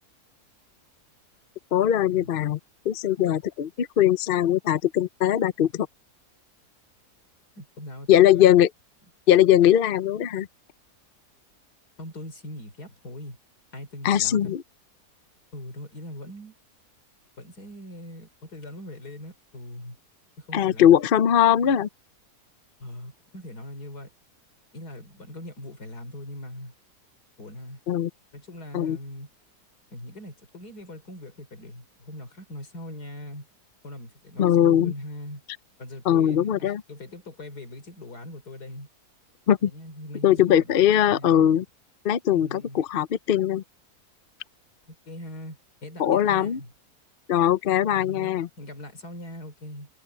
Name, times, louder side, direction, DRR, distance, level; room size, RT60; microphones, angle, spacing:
voice 1, 1.7-2.6 2.8-5.9 8.1-8.7 9.3-10.5 14.0-14.6 20.5-21.9 27.9-28.1 28.7-29.0 34.4-34.9 36.1-36.8 39.5-39.7 40.2-41.6 42.0-43.6 46.0-46.6 47.3-48.5, left 10 dB, 55° left, 0.6 m, -20 dB
voice 2, 7.6-8.5 12.0-13.4 13.7-14.5 15.5-16.5 17.4-20.0 20.4-20.9 21.6-21.8 22.8-24.1 24.7-26.7 27.4-27.8 28.3-29.3 29.9-33.5 33.8-35.4 35.8-38.9 39.6-41.5 42.3-42.8 44.9-46.7 47.9-49.9, left 1 dB, 75° left, 4.3 m, -41 dB
omnidirectional pair, 1.7 m